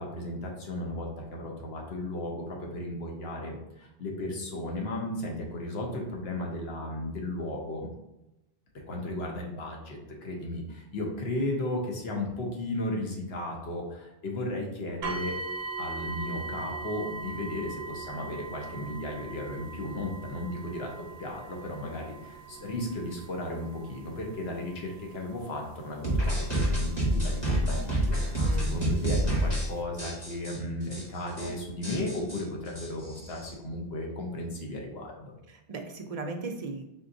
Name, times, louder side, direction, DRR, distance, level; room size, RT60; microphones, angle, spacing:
voice 1, 0.0-7.9 8.9-15.4 15.8-35.3, left 1 dB, 75° left, 0 dB, 1.1 m, -35 dB
sound 1, 15.0-27.9 28.7-28.8 29.4-29.5, right 3 dB, 80° right, 0.8 m, -41 dB
sound 2, 26.0-29.7 30.0-30.6 30.9-31.0 31.3-31.5 31.8-33.5, right 1 dB, 25° left, 1.3 m, -28 dB
voice 2, 28.4-28.7 35.5-36.8, right 3 dB, 50° right, 4 dB, 0.5 m, -37 dB
4.3 x 3.8 x 2.6 m, 0.93 s
omnidirectional pair, 1.0 m